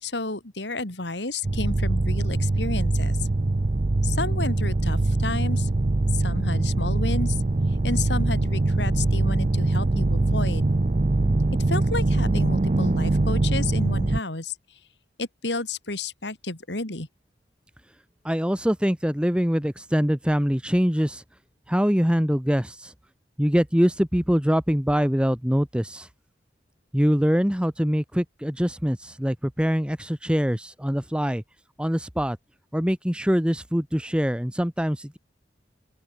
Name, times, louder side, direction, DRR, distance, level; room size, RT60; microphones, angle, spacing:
voice 1, 0.0-3.3 4.0-5.7 6.1-7.4 7.8-10.7 11.7-14.6 15.2-17.1, left 3 dB, 70° left, 3.2 m, -31 dB
sound 1, 1.4-14.2, right 2 dB, 40° right, 0.6 m, -23 dB
voice 2, 18.2-21.2 21.7-22.9 23.4-26.1 26.9-31.4 31.8-32.4 32.7-35.2, equal, 5° right, 1.5 m, -23 dB
open air
head